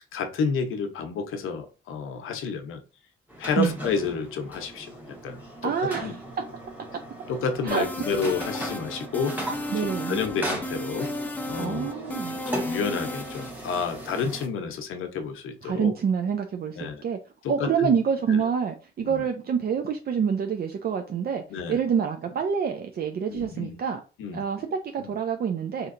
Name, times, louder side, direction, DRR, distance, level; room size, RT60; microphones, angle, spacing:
voice 1, 0.1-2.8 3.4-5.7 6.0-6.1 7.3-9.6 10.1-11.1 11.5-12.0 12.6-15.9 16.8-17.0 17.4-18.0 19.0-19.2 21.5-21.8 23.3-23.7 24.2-24.4 25.0-25.1, left 5 dB, 90° left, 0.6 m, -30 dB
sound 1, 3.3-14.5, right 1 dB, 10° right, 1.1 m, -38 dB
voice 2, 5.6-6.2 7.6-7.8 9.7-10.2 11.6-12.4 15.6-17.2 17.5-21.4 21.7-24.0 24.3-25.9, right 7 dB, 50° right, 0.4 m, -27 dB
sound 2, 7.7-13.5, left 1 dB, 10° left, 0.5 m, -34 dB
4.3 x 2.7 x 2.5 m
cardioid pair, 95°, 20 cm